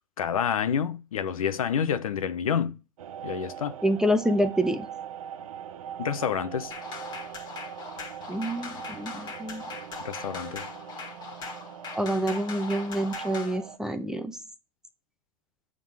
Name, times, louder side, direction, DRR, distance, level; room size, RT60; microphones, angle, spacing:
voice 1, 0.2-2.7 3.2-3.7 6.0-6.7 10.0-10.7, left 7 dB, 90° left, 0.7 m, -28 dB
sound 1, 3.0-13.8, right 9 dB, 80° right, 0.7 m, -41 dB
voice 2, 3.8-4.9 8.3-9.6 12.0-14.4, equal, 5° right, 0.7 m, -27 dB
sound 2, 6.7-13.6, left 4 dB, 25° left, 1.8 m, -40 dB
7.4 x 3.7 x 4.7 m
hypercardioid pair, 120°, 18 cm